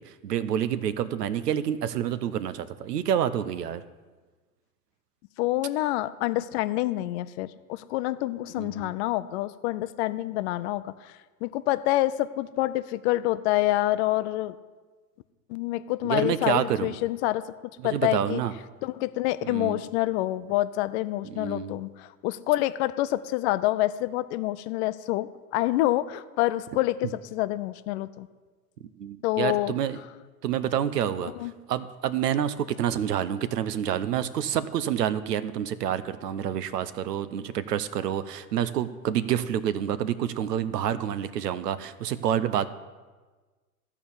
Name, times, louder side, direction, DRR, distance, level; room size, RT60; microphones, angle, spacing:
voice 1, 0.0-3.8 8.6-8.9 16.0-17.0 17.8-18.5 19.4-19.8 21.2-21.8 29.0-30.0 30.4-42.7, right 10 dB, 85° right, 14 dB, 0.8 m, -28 dB
voice 2, 5.4-11.1 11.4-14.5 15.5-17.4 17.8-18.4 18.8-28.3 29.2-29.7 31.2-31.5, left 16 dB, 45° left, 14 dB, 0.5 m, -27 dB
14.0 x 4.7 x 7.1 m, 1.3 s
hypercardioid pair, 105°, 47 cm